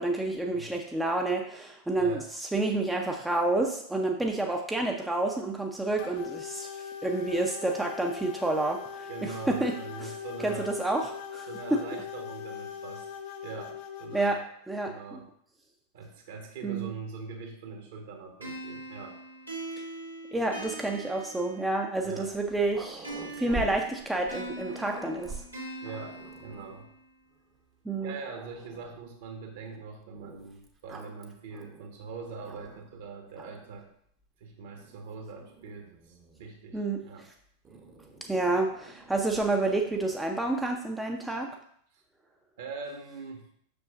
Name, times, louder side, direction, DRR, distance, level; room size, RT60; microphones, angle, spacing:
voice 1, 0.0-9.7 10.0-10.1 10.4-11.8 14.1-14.4 14.7-15.2 16.6-16.9 20.3-25.4 27.8-28.2 36.7-37.0 38.3-41.5, right 2 dB, 5° right, 1 dB, 0.6 m, -29 dB
voice 2, 1.9-2.3 9.1-10.7 11.5-13.1 13.4-14.4 14.8-15.3 15.9-19.2 22.0-22.3 25.8-26.9 28.0-33.8 34.4-37.3 41.9-42.0 42.6-43.5, right 4 dB, 55° right, 3 dB, 1.5 m, -42 dB
sound 1, 6.0-14.4, left 8 dB, 45° left, 0.7 m, -41 dB
sound 2, 18.4-22.0 23.0-27.1, right 2 dB, 90° right, 2.1 m, -42 dB
Growling, 22.3-26.8 27.5-27.6 28.0-29.1 30.1-33.0 33.3-33.8 34.7-36.5 37.6-40.2, right 2 dB, 25° right, 0.9 m, -46 dB
6.9 x 6.3 x 2.5 m, 0.65 s
figure-of-eight pair, 90°, 0 cm